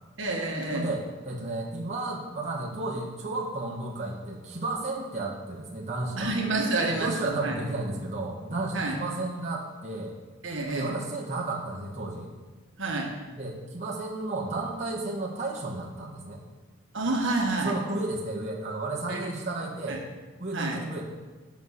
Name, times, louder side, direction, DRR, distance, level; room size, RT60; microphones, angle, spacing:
voice 1, 0.2-0.9 6.2-7.5 8.7-8.9 10.4-10.9 12.8-13.1 16.9-17.7 19.1-19.3 19.9-20.0 20.5-20.8, right 2 dB, 60° right, 0 dB, 1.5 m, -28 dB
voice 2, 0.7-6.3 7.0-10.2 10.7-12.3 13.3-16.4 17.6-20.0 20.4-21.0, right 2 dB, 35° right, -4 dB, 1.4 m, -33 dB
9.1 x 5.7 x 6.4 m, 1.3 s
head